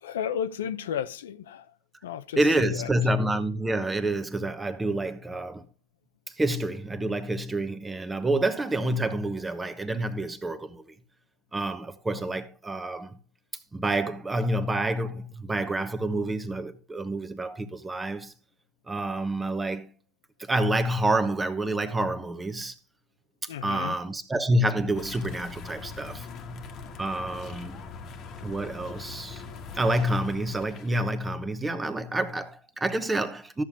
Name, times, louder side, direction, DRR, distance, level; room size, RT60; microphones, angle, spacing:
voice 1, 0.0-1.7 2.0-2.9 23.5-24.0, left 8 dB, 80° left, 0.7 m, -33 dB
voice 2, 2.4-5.6 6.3-10.8 11.5-13.2 13.7-18.3 18.9-19.9 20.4-22.7 23.4-26.3 27.0-27.8 28.4-29.4 29.7-33.6, right 1 dB, 10° right, 1.0 m, -28 dB
sound 1, 24.9-31.0, left 5 dB, 35° left, 1.3 m, -42 dB
13.0 x 7.0 x 3.6 m
hypercardioid pair, 115°, 0 cm